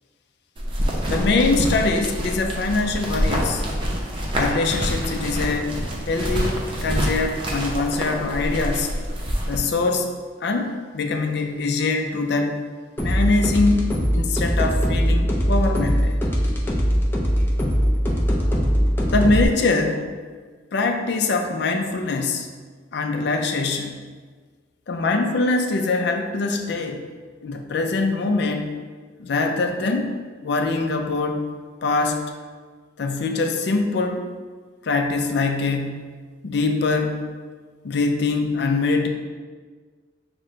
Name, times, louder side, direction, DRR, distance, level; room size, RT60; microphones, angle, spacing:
sound 1, 0.6-9.6, equal, 30° right, 0.6 m, -26 dB
voice 1, 1.1-3.6 4.4-5.8 6.1-9.0 9.5-10.1 10.4-12.6 13.0-16.2 19.1-20.0 20.7-22.5 22.9-24.0 24.9-27.0 27.4-28.7 29.2-30.1 30.4-31.5 31.8-32.2 33.0-34.2 34.8-36.1 36.4-37.3 37.8-39.1, left 3 dB, 65° left, 5 dB, 0.4 m, -23 dB
sound 2, 13.0-19.4, equal, 10° left, 0.5 m, -21 dB
6.0 x 2.1 x 3.7 m, 1.5 s
head